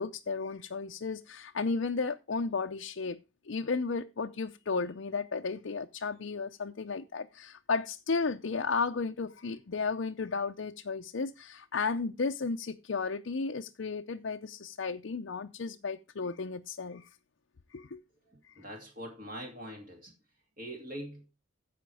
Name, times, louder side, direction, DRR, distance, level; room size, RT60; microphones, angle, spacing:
voice 1, 0.0-3.2 3.4-17.1 17.7-18.0, left 4 dB, 60° left, 0.6 m, -34 dB
voice 2, 18.6-20.1 20.6-21.2, equal, 40° right, 2.6 m, -42 dB
15.0 x 5.1 x 4.8 m
head